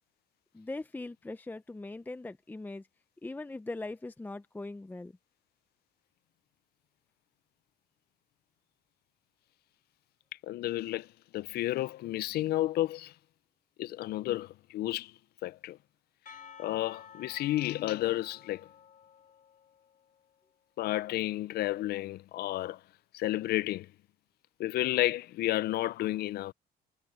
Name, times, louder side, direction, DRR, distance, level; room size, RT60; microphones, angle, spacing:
voice 1, 0.5-2.9 3.2-5.1, left 2 dB, 10° left, 0.7 m, -40 dB
voice 2, 10.4-13.1 13.8-15.1 15.4-15.8 16.6-18.7 20.8-22.8 23.1-23.9 24.6-26.5, left 15 dB, 70° left, 0.6 m, -31 dB
Percussion, 16.3-20.2, left 7 dB, 50° left, 1.7 m, -53 dB
cardioid pair, 110°, 17 cm